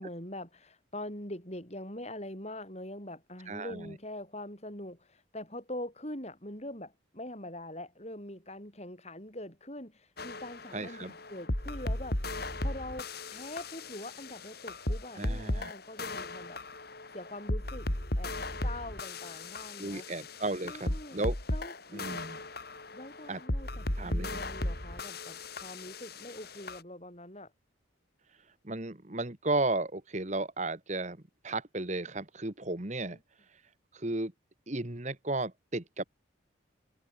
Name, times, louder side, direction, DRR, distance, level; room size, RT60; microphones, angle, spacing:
voice 1, 0.0-16.6 17.1-17.9 18.1-18.4 18.6-20.1 20.6-21.2 21.5-22.2 22.9-27.5 33.1-33.2, left 1 dB, 35° left, 7.6 m, -43 dB
voice 2, 3.5-3.9 10.7-11.1 15.2-15.7 19.8-21.3 21.9-22.4 23.3-23.4 24.0-24.4 28.6-31.2 31.4-33.2 33.9-34.3 34.7-36.0, right 2 dB, 35° right, 1.5 m, -34 dB
sound 1, 10.2-26.8, left 1 dB, 50° left, 3.7 m, -36 dB
head